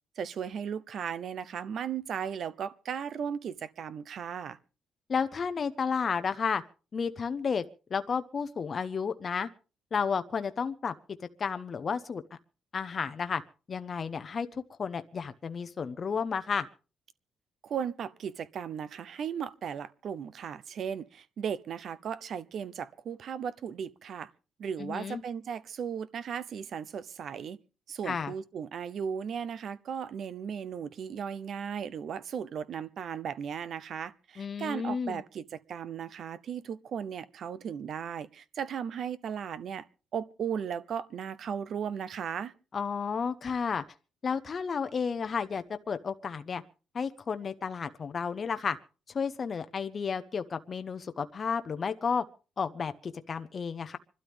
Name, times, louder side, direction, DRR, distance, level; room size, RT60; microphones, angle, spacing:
voice 1, 0.2-4.6 17.6-24.3 24.6-27.6 27.9-39.8 40.1-42.5, right 7 dB, 60° right, 0.8 m, -36 dB
voice 2, 5.1-6.6 6.9-7.6 7.9-9.5 9.9-10.9 11.4-12.2 12.7-13.4 13.7-16.7 24.8-25.2 28.0-28.3 34.4-35.2 42.7-43.8 44.2-46.6 46.9-48.8 49.1-52.2 52.6-54.0, left 6 dB, 45° left, 0.8 m, -32 dB
26.5 x 12.5 x 3.5 m
cardioid pair, 90°, 0 cm